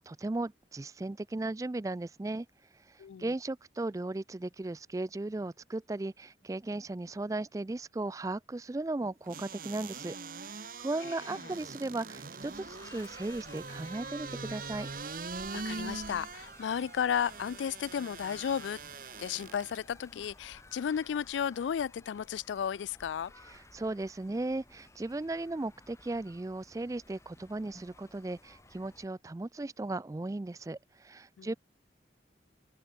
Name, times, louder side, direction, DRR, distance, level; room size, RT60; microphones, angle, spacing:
voice 1, 0.0-2.5 2.9-10.2 10.5-14.9 23.4-31.5, right 2 dB, 20° right, 0.3 m, -36 dB
sound 1, 9.3-19.8 20.2-20.3, right 4 dB, 50° right, 1.2 m, -43 dB
sound 2, 12.4-29.1, left 2 dB, 15° left, 2.6 m, -55 dB
voice 2, 15.5-18.8 19.2-23.3 31.4-31.5, left 8 dB, 85° left, 0.3 m, -33 dB
open air
head